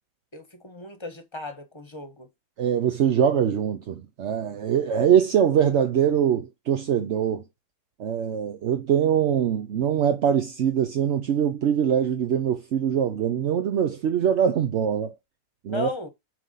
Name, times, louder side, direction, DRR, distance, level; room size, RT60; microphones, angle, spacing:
voice 1, 0.3-2.3 15.7-16.1, left 3 dB, 20° left, 1.1 m, -36 dB
voice 2, 2.6-7.4 8.0-15.2 15.6-15.9, right 8 dB, 60° right, 0.8 m, -23 dB
6.1 x 3.8 x 5.6 m
omnidirectional pair, 1.8 m